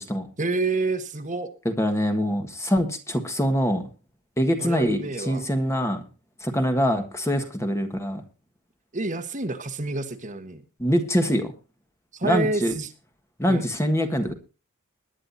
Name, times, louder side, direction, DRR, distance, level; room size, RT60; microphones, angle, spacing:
voice 1, 0.4-1.5 4.6-5.4 8.9-10.6 12.1-12.9 13.5-13.7, right 3 dB, 35° right, 7 dB, 1.3 m, -28 dB
voice 2, 1.6-3.8 4.4-6.0 6.4-8.2 10.8-11.5 12.2-12.8 13.4-14.3, equal, 15° left, 6 dB, 1.6 m, -24 dB
21.5 x 9.9 x 2.7 m, 0.33 s
head